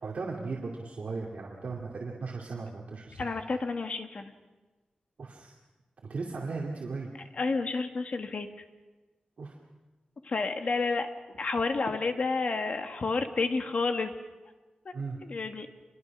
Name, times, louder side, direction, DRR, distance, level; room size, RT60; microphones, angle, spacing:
voice 1, 0.0-3.3 5.2-5.5 6.0-7.1 9.4-9.5 14.9-15.2, right 4 dB, 65° right, -2 dB, 2.4 m, -37 dB
voice 2, 3.2-4.3 7.4-8.5 10.2-11.1 11.4-14.1 14.8-14.9 15.3-15.7, left 4 dB, 55° left, 6 dB, 1.6 m, -30 dB
27.0 x 22.5 x 6.0 m, 1.3 s
wide cardioid pair, 140°, 3 cm